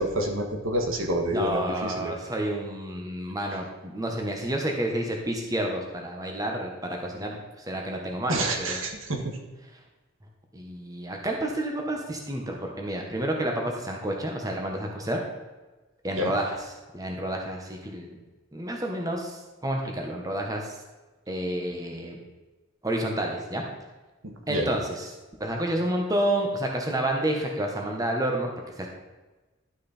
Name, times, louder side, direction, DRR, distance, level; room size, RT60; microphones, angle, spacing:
voice 1, 0.0-2.1 8.3-9.4 16.2-16.3 24.2-24.7, right 1 dB, 75° right, 2 dB, 1.5 m, -28 dB
voice 2, 1.3-8.8 10.5-15.2 16.0-18.2 18.5-20.7 21.3-22.2 22.8-23.6 24.5-25.1 25.4-28.5 28.8-28.9, right 1 dB, 15° right, 1 dB, 1.2 m, -30 dB
12.0 x 6.2 x 4.4 m, 1.2 s
head